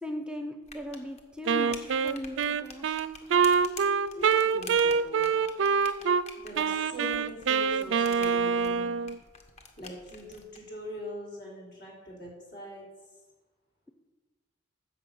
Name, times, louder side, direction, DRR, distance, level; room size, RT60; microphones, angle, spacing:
voice 1, 0.0-3.0, left 1 dB, 5° right, 6 dB, 0.6 m, -38 dB
sound 1, 0.6-10.6, left 4 dB, 35° left, 1.2 m, -47 dB
Wind instrument woodwind instrument, 1.5-6.2 6.6-9.2, right 6 dB, 85° right, 0.4 m, -25 dB
voice 2, 4.1-5.3 6.4-9.1 9.8-12.9, equal, 60° left, -3 dB, 3.9 m, -42 dB
9.6 x 6.4 x 7.8 m, 1.2 s
head